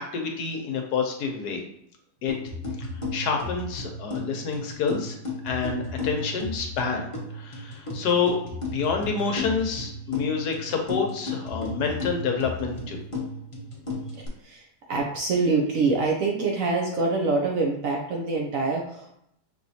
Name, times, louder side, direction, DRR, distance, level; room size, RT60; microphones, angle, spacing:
voice 1, 0.0-1.6 2.2-2.3 2.8-2.9 3.1-5.2 5.4-7.1 7.3-8.4 8.7-13.0, left 5 dB, 70° left, 3 dB, 1.2 m, -28 dB
sound 1, 2.3-14.3, left 2 dB, 25° left, 0.7 m, -34 dB
voice 2, 14.1-19.1, right 3 dB, 65° right, 0 dB, 0.9 m, -25 dB
5.5 x 3.0 x 2.7 m, 0.75 s
omnidirectional pair, 1.9 m